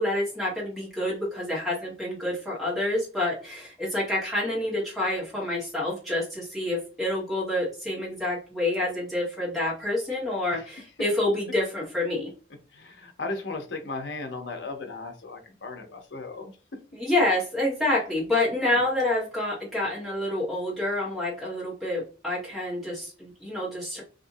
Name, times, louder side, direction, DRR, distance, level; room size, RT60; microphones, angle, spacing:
voice 1, 0.0-12.3 16.9-24.0, left 1 dB, ahead, -8 dB, 1.3 m, -28 dB
voice 2, 12.7-16.5 18.7-18.8, left 3 dB, 70° left, 4 dB, 0.7 m, -36 dB
2.7 x 2.5 x 2.6 m, 0.36 s
head